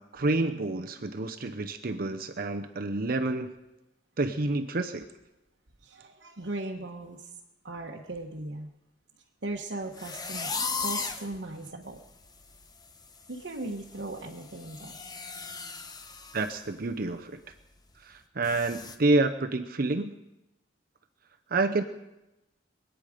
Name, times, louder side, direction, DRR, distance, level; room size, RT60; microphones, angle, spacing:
voice 1, 0.0-3.5 4.2-5.1 16.3-17.4 18.0-20.1 21.5-21.8, right 2 dB, 55° right, 6 dB, 0.8 m, -28 dB
voice 2, 5.8-7.4 7.6-8.7 9.4-10.5 10.8-12.0 13.3-15.0, right 2 dB, 75° right, -1 dB, 1.2 m, -38 dB
sound 1, 9.9-11.3 11.9-12.0 12.4-12.6 12.9-16.6 16.9-17.1 17.5-17.6 18.4-19.0, left 4 dB, 20° left, 0.9 m, -36 dB
24.5 x 9.3 x 5.0 m, 0.97 s
head